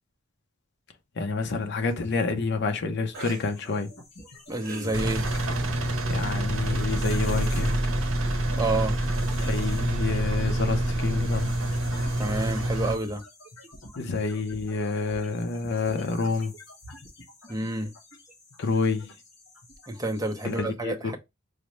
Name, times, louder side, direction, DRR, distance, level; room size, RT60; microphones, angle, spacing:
voice 1, 1.2-3.9 6.1-7.8 9.4-11.6 14.0-16.5 18.6-19.1 20.4-21.1, left 4 dB, 55° left, 0.6 m, -28 dB
sound 1, 1.5-1.9 3.1-3.5 4.3-5.1 6.2-6.3, right 3 dB, 45° right, 0.9 m, -41 dB
sound 2, 3.1-20.6, left 1 dB, 80° left, 1.4 m, -47 dB
voice 2, 4.5-5.3 8.5-9.0 12.2-13.2 17.5-17.9 19.9-21.2, right 2 dB, 15° right, 0.6 m, -29 dB
Engine, 4.9-13.0, right 1 dB, 75° right, 0.7 m, -27 dB
4.9 x 2.1 x 3.1 m
head